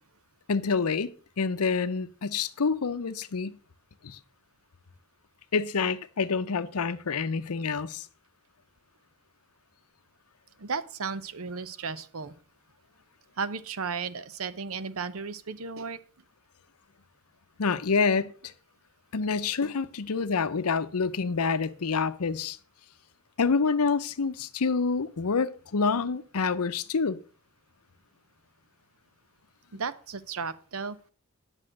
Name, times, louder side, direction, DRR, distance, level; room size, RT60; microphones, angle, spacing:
voice 1, 0.5-1.1 1.4-3.6 4.0-4.2 5.5-8.1 17.6-18.3 19.1-22.6 23.4-27.2, left 5 dB, 85° left, 0.7 m, -27 dB
voice 2, 10.6-12.3 13.4-16.0 29.7-31.0, right 5 dB, 70° right, 0.8 m, -34 dB
9.9 x 6.3 x 6.3 m
head